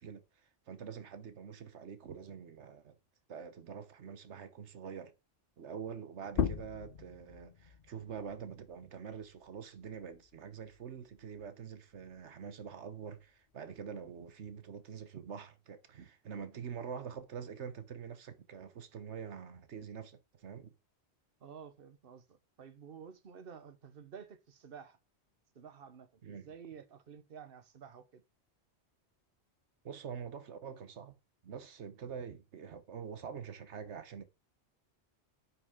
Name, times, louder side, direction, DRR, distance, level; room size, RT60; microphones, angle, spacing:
voice 1, 0.0-3.0 3.3-5.1 5.6-20.7 26.2-26.5 29.8-31.2 31.4-34.2, right 7 dB, 85° right, 1.3 m, -45 dB
sound 1, 6.3-11.5 11.9-13.7, left 7 dB, 55° left, 0.9 m, -41 dB
voice 2, 21.4-25.0 25.5-28.2, right 7 dB, 55° right, 1.2 m, -52 dB
9.7 x 5.8 x 3.7 m
omnidirectional pair, 1.1 m